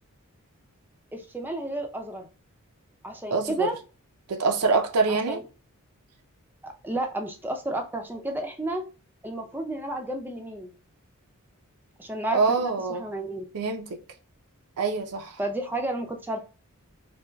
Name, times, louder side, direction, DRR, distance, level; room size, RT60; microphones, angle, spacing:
voice 1, 1.1-2.3 3.0-3.8 5.1-5.4 6.6-8.8 9.2-10.7 12.0-13.4 15.4-16.4, right 1 dB, 10° right, 0.4 m, -32 dB
voice 2, 3.3-3.7 4.3-5.4 12.3-13.0 13.5-14.0 14.8-15.4, right 4 dB, 90° right, 0.5 m, -25 dB
4.3 x 2.2 x 2.2 m
head